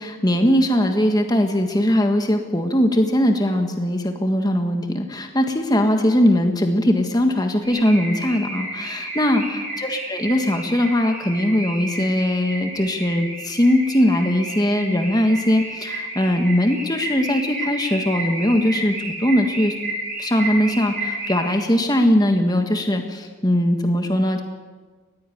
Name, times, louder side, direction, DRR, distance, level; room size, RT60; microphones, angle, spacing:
voice 1, 0.0-9.4 9.8-19.7 20.2-24.4, left 1 dB, 20° left, 4 dB, 1.6 m, -20 dB
Car / Alarm, 7.6-21.8, right 1 dB, 45° right, 7.5 m, -31 dB
20.5 x 15.5 x 9.4 m, 1.4 s
head